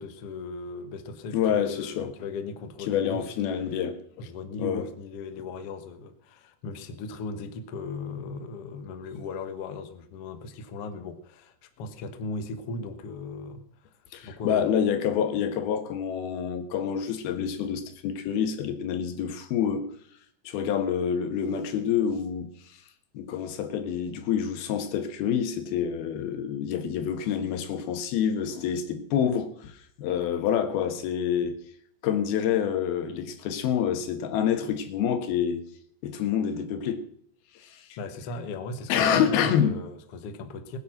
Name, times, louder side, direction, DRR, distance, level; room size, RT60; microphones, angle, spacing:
voice 1, 0.0-3.3 4.2-13.9 14.2-14.8 38.0-40.8, left 3 dB, 55° left, 1.7 m, -37 dB
voice 2, 1.3-2.1 2.9-4.0 4.6-4.8 14.1-19.9 20.4-22.5 23.1-29.7 30.0-31.5 32.0-35.6 36.0-37.0 37.6-37.9 38.9-39.8, left 8 dB, 90° left, 3.3 m, -27 dB
20.0 x 9.6 x 6.0 m
omnidirectional pair, 4.2 m